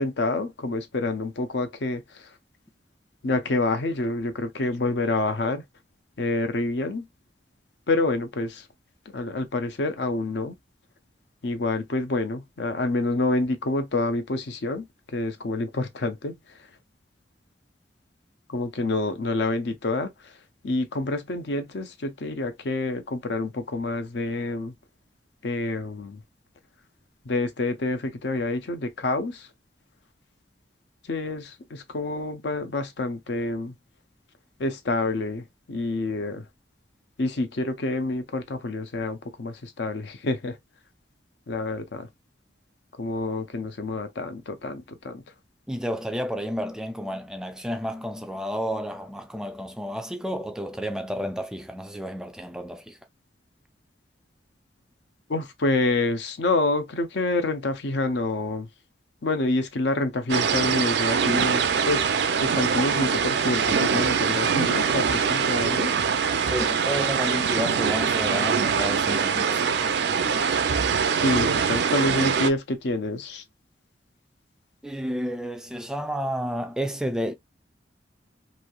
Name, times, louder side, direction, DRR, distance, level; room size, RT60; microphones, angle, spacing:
voice 1, 0.0-2.0 3.2-5.6 6.2-7.1 7.9-8.6 9.1-10.5 11.4-14.8 15.1-16.3 18.5-20.1 20.6-24.7 25.4-26.2 27.3-29.5 31.1-33.7 34.6-36.4 37.2-40.6 41.5-42.1 43.0-45.2 55.3-58.7 59.2-62.2 62.4-65.9 71.1-73.4, left 2 dB, 70° left, 0.6 m, -27 dB
voice 2, 45.7-53.0 66.5-69.9 74.8-77.3, equal, 5° right, 0.3 m, -31 dB
sound 1, 60.3-72.5, right 6 dB, 70° right, 0.4 m, -23 dB
3.1 x 2.7 x 2.3 m
head